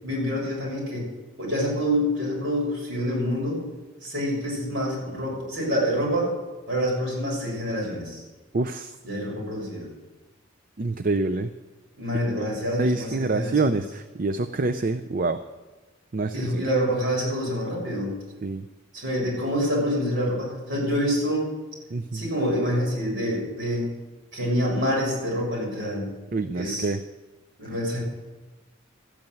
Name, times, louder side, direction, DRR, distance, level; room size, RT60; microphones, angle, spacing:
voice 1, 0.0-1.1 1.4-3.6 4.0-6.3 6.7-8.2 9.0-9.9 12.0-13.8 16.3-18.1 18.9-21.5 22.1-23.9 24.3-26.1 26.5-26.9 27.6-28.0, equal, 60° right, -3 dB, 6.6 m, -26 dB
voice 2, 8.5-9.0 10.8-11.5 12.4-12.5 12.8-15.4 16.1-16.6 18.4-18.7 21.9-22.3 26.3-27.0, right 3 dB, 45° right, 10 dB, 0.5 m, -26 dB
13.5 x 8.7 x 9.2 m, 1.1 s
head